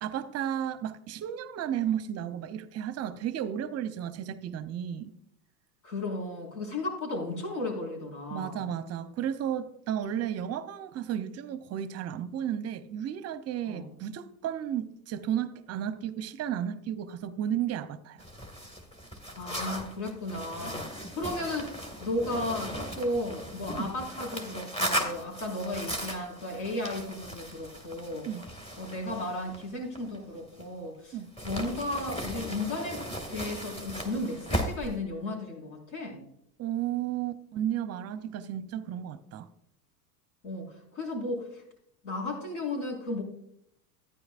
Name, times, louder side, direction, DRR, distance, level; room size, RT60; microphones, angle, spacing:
voice 1, 0.0-5.1 8.3-18.2 23.7-23.9 28.3-28.5 31.1-31.3 36.6-39.5, right 10 dB, 30° right, 0.7 m, -33 dB
voice 2, 5.8-8.6 13.6-13.9 19.4-21.7 22.0-28.3 28.8-31.2 31.4-36.2 40.4-41.6 42.0-43.2, left 2 dB, 65° left, 4.7 m, -34 dB
sound 1, 18.2-30.9 31.4-35.0, equal, 10° left, 2.0 m, -37 dB
13.5 x 10.0 x 2.5 m
hypercardioid pair, 90°, 48 cm